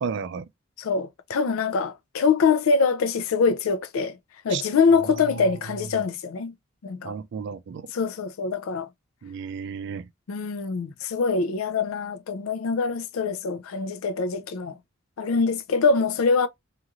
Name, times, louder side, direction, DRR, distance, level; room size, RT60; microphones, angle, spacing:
voice 1, 0.0-0.5 4.5-4.6 5.1-5.5 7.0-7.9 9.2-10.1, right 6 dB, 60° right, 0.3 m, -33 dB
voice 2, 0.8-4.2 4.4-6.5 6.8-7.2 7.9-8.9 10.3-14.8 15.2-16.5, left 5 dB, 85° left, 0.4 m, -24 dB
3.0 x 2.4 x 2.4 m
head